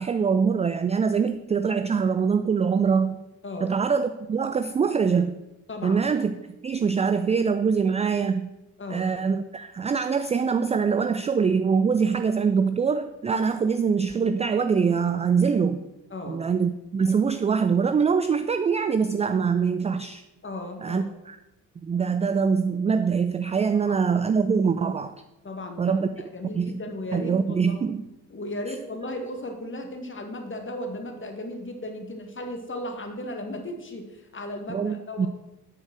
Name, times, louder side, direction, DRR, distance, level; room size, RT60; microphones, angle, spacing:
voice 1, 0.0-3.2 3.6-5.4 5.8-6.3 6.6-8.5 8.9-15.8 16.3-20.2 20.8-21.4 21.8-25.2 25.8-26.1 26.5-26.8 27.1-28.0 28.7-28.8 34.7-35.3, right 6 dB, 15° right, 10 dB, 0.4 m, -24 dB
voice 2, 5.7-6.0 8.8-9.1 16.1-16.4 20.4-21.1 23.9-24.0 25.4-26.1 26.3-27.8 28.3-35.3, left 1 dB, 25° left, 4 dB, 2.0 m, -35 dB
8.6 x 6.8 x 6.2 m, 0.93 s
figure-of-eight pair, 40°, 47 cm